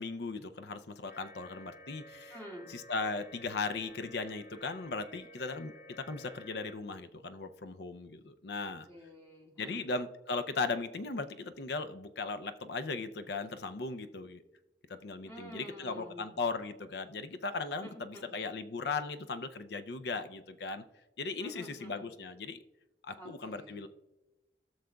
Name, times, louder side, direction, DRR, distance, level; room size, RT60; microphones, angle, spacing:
voice 1, 0.0-2.3 2.7-8.9 9.6-14.4 14.9-20.8 21.2-22.6 23.0-23.9, left 4 dB, 70° left, 11 dB, 0.5 m, -37 dB
sound 1, 1.1-6.7, left 1 dB, 55° left, 1.5 m, -53 dB
voice 2, 2.3-2.8 8.6-9.8 15.2-16.4 17.8-18.3 21.4-22.0 23.2-23.8, equal, 15° left, -5 dB, 2.2 m, -49 dB
17.0 x 6.4 x 2.3 m, 1.0 s
head